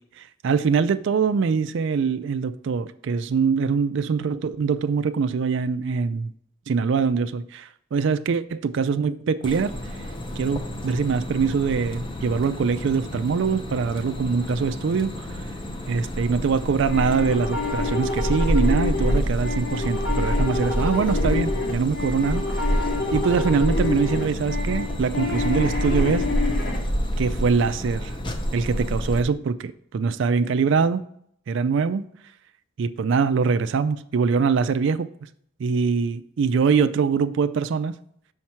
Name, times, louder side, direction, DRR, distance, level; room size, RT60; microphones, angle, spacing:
voice 1, 0.2-6.3 6.7-9.7 10.4-15.3 15.9-26.3 27.2-28.1 28.5-31.0 31.5-32.1 32.8-35.1 35.6-37.9, right 5 dB, 60° right, 11 dB, 0.3 m, -23 dB
sound 1, 9.4-29.2, equal, 25° left, 0.7 m, -28 dB
sound 2, 16.9-26.8, left 3 dB, 75° left, 2.2 m, -28 dB
6.4 x 4.4 x 5.8 m, 0.66 s
head